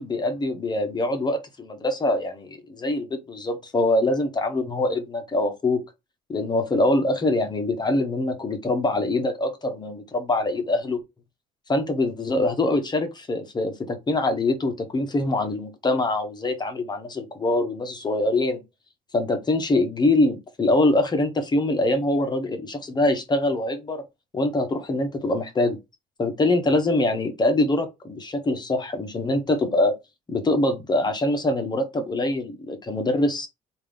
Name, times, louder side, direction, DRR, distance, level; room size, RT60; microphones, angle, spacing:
voice 1, 0.0-5.8 6.3-11.0 11.7-18.6 19.1-24.0 24.3-25.8 26.2-30.0 30.3-33.5, left 2 dB, 25° left, 0.8 m, -24 dB
3.5 x 2.5 x 3.4 m
cardioid pair, 110°, 17 cm